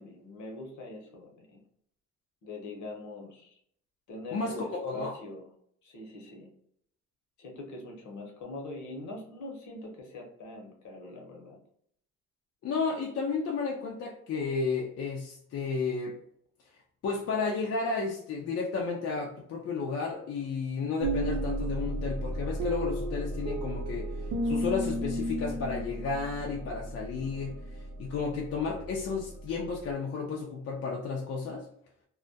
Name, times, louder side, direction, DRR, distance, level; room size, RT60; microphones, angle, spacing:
voice 1, 0.0-1.6 2.4-3.6 4.1-5.5 5.8-6.5 7.4-11.6, left 2 dB, 70° left, 0 dB, 0.9 m, -43 dB
voice 2, 4.3-5.2 12.6-16.2 17.0-24.2 24.4-27.5 28.0-31.7, left 4 dB, 55° left, -1 dB, 0.5 m, -32 dB
sound 1, 21.0-29.9, right 1 dB, 80° right, 0.5 m, -34 dB
2.3 x 2.1 x 2.6 m, 0.67 s
cardioid pair, 90°, 30 cm